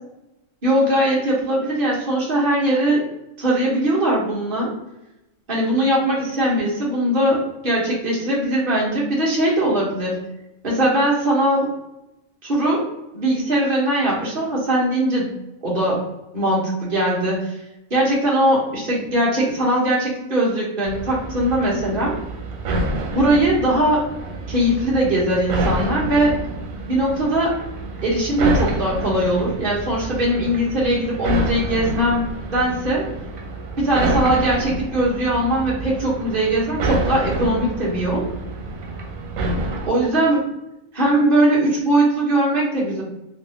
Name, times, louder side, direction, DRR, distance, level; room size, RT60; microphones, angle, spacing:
voice 1, 0.6-3.1 3.4-4.7 5.5-10.2 10.6-11.7 12.4-12.9 13.1-15.3 15.6-16.1 16.3-17.6 17.9-22.1 23.1-24.1 24.5-26.3 26.9-27.6 28.0-33.1 33.8-38.3 39.9-40.4 40.9-43.0, right 1 dB, 45° right, -5 dB, 1.3 m, -20 dB
sound 1, 20.8-39.9, right 2 dB, 90° right, 1.1 m, -28 dB
3.2 x 3.0 x 2.8 m, 0.92 s
omnidirectional pair, 1.4 m